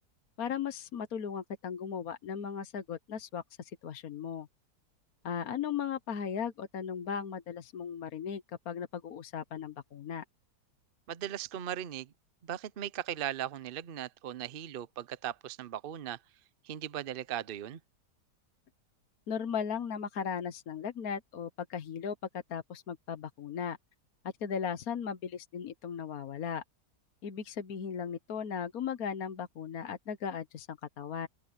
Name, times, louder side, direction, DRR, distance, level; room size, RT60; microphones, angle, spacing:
voice 1, 0.4-4.5 5.2-10.2 19.3-22.2 22.5-23.8 24.4-26.6 27.2-31.3, left 7 dB, 65° left, 1.5 m, -37 dB
voice 2, 11.1-12.1 12.4-16.2 16.6-17.8, right 11 dB, 55° right, 0.6 m, -38 dB
open air
omnidirectional pair, 1.7 m